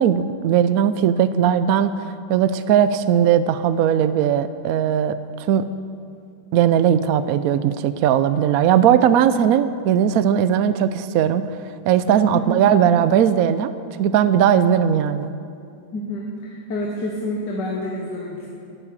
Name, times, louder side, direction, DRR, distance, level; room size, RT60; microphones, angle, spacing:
voice 1, 0.0-5.2 5.5-5.6 6.5-11.5 11.8-13.7 14.0-15.3, right 9 dB, 70° right, 12 dB, 0.9 m, -18 dB
voice 2, 15.9-18.5, left 1 dB, 70° left, -1 dB, 2.0 m, -28 dB
11.5 x 9.7 x 8.7 m, 2.4 s
omnidirectional pair, 1.9 m